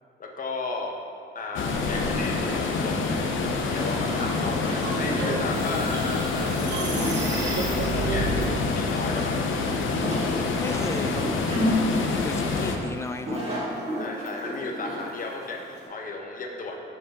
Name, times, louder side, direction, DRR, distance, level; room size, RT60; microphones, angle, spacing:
voice 1, 0.2-1.0 1.3-3.3 3.7-8.5 8.7-9.4 14.0-16.8, left 3 dB, 45° left, 1 dB, 0.9 m, -35 dB
sound 1, 1.5-12.8, left 4 dB, 80° left, 0.7 m, -27 dB
sound 2, 3.7-15.9, equal, 35° right, 1.6 m, -32 dB
sound 3, 4.7-8.5, right 4 dB, 65° right, 0.9 m, -32 dB
voice 2, 10.6-11.5 11.9-13.5, left 2 dB, 15° left, 7 dB, 0.4 m, -34 dB
6.0 x 5.4 x 4.2 m, 2.5 s
cardioid pair, 90°, 20 cm